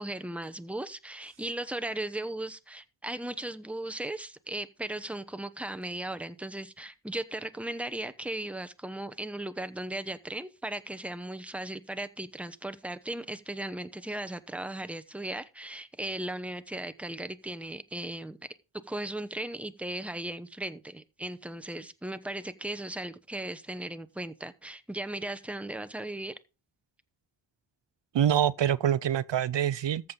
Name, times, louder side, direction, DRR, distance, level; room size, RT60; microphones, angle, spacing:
voice 1, 0.0-18.4 18.9-26.4, right 1 dB, 5° right, 0.8 m, -37 dB
voice 2, 28.1-30.1, right 10 dB, 75° right, 0.6 m, -25 dB
14.0 x 7.2 x 3.8 m
wide cardioid pair, 100°, 44 cm